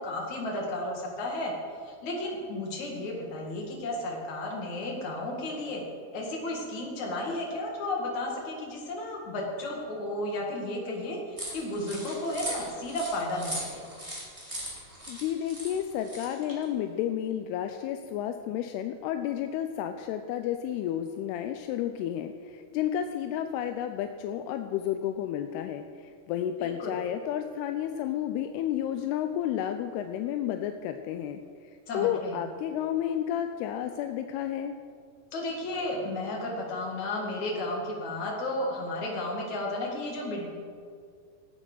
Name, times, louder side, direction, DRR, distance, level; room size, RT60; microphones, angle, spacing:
voice 1, 0.0-1.5 1.8-5.8 6.1-13.9 26.6-27.0 31.9-32.4 35.3-40.5, left 1 dB, 50° left, -1 dB, 3.2 m, -33 dB
sound 1, 11.4-16.6, equal, 10° right, 1.9 m, -39 dB
voice 2, 15.1-34.8, left 10 dB, 85° left, 7 dB, 2.6 m, -31 dB
15.0 x 8.2 x 6.2 m, 2.2 s
omnidirectional pair, 4.6 m